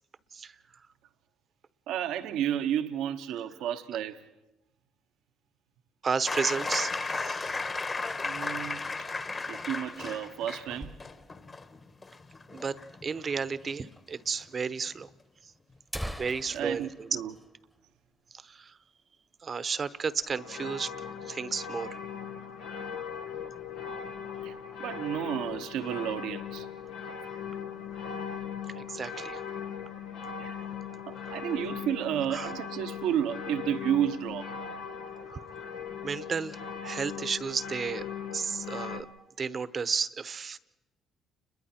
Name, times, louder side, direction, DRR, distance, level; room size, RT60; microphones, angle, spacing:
voice 1, 1.9-4.2 8.2-8.8 9.5-11.0 16.5-17.3 24.4-24.5 24.8-26.7 30.4-30.6 31.1-34.5, right 10 dB, 80° right, 1.0 m, -31 dB
voice 2, 6.0-7.6 12.5-12.8 13.0-15.1 16.2-17.1 18.4-18.7 19.4-20.9 21.2-21.9 28.8-29.4 32.3-32.5 35.3-35.7 36.0-38.0 38.3-39.1 39.4-40.6, right 5 dB, 45° right, 0.9 m, -33 dB
sound 1, 6.3-13.8 15.0-15.1, left 3 dB, 35° left, 1.7 m, -35 dB
sound 2, 10.8-11.5 11.9-12.0 12.2-12.3 13.0-13.1 14.0-14.1 14.4-14.5 15.3-15.4 15.7-18.3 18.6-18.8 19.2-19.4 19.8-20.4, equal, ahead, 1.1 m, -43 dB
sound 3, 20.3-39.0, left 7 dB, 85° left, 1.6 m, -39 dB
29.5 x 21.5 x 4.5 m
supercardioid pair, 70°, 0 cm